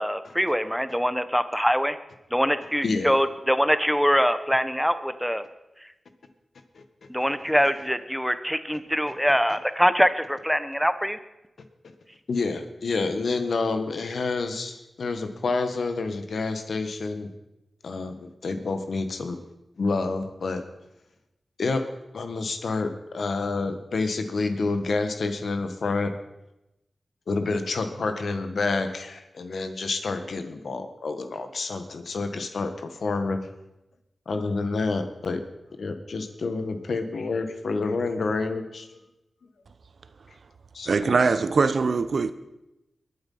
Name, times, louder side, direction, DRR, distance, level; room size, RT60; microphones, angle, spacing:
voice 1, 0.0-2.0 2.3-5.4 5.8-5.9 7.1-11.2, equal, ahead, 1.2 m, -23 dB
voice 2, 12.3-17.3 17.8-19.4 19.8-20.6 21.6-21.8 22.1-26.1 27.3-33.4 34.3-35.4 35.8-38.9 40.7-41.2, left 3 dB, 75° left, 1.5 m, -28 dB
voice 3, 40.9-42.3, right 4 dB, 75° right, 0.8 m, -22 dB
22.0 x 8.1 x 5.6 m
cardioid pair, 45°, 0 cm